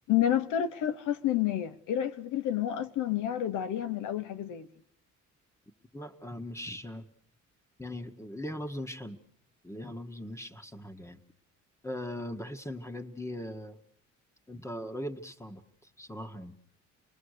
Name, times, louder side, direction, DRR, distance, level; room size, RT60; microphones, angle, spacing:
voice 1, 0.1-4.7, left 11 dB, 85° left, 0.9 m, -29 dB
voice 2, 5.9-7.1 7.8-9.2 9.6-11.2 11.8-13.8 14.5-16.5, left 1 dB, 10° left, 1.6 m, -40 dB
27.5 x 20.5 x 6.6 m
cardioid pair, 90°, 30 cm